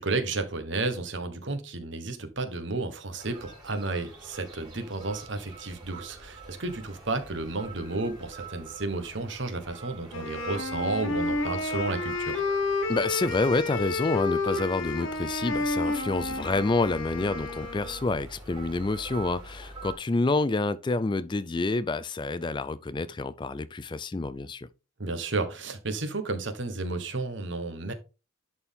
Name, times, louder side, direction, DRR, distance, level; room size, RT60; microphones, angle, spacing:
voice 1, 0.0-12.4 25.0-27.9, right 3 dB, 60° right, 1.3 m, -32 dB
sound 1, 3.2-20.0, right 4 dB, 20° right, 3.8 m, -45 dB
Wind instrument woodwind instrument, 10.1-18.0, left 3 dB, 80° left, 1.6 m, -31 dB
voice 2, 12.9-24.7, left 3 dB, 25° left, 0.3 m, -28 dB
11.0 x 4.4 x 3.6 m
head